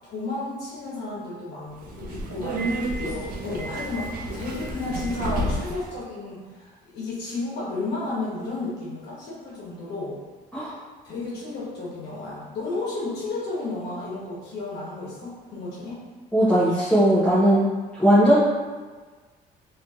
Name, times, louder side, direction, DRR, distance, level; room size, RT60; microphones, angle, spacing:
voice 1, 0.0-10.2 11.0-16.0, left 2 dB, 75° left, -7 dB, 1.0 m, -33 dB
Subway metro underground, 1.7-6.0, right 1 dB, 55° right, 0.5 m, -30 dB
voice 2, 16.3-17.7 18.0-18.4, equal, 5° left, -12 dB, 0.6 m, -18 dB
2.7 x 2.7 x 2.3 m, 1.4 s
cardioid pair, 110°, 17 cm